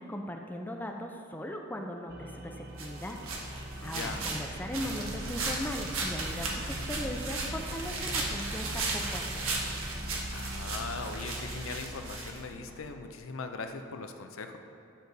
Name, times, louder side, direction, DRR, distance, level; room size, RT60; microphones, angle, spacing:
voice 1, 0.0-3.2 3.8-9.6, equal, 10° left, 2 dB, 0.4 m, -39 dB
sound 1, 2.1-11.8, right 1 dB, 55° right, 0.8 m, -43 dB
sound 2, 2.8-12.8, right 2 dB, 80° right, 1.3 m, -36 dB
voice 2, 3.8-4.3 10.3-14.6, left 4 dB, 75° left, 6 dB, 0.6 m, -40 dB
10.5 x 6.8 x 4.0 m, 2.6 s
head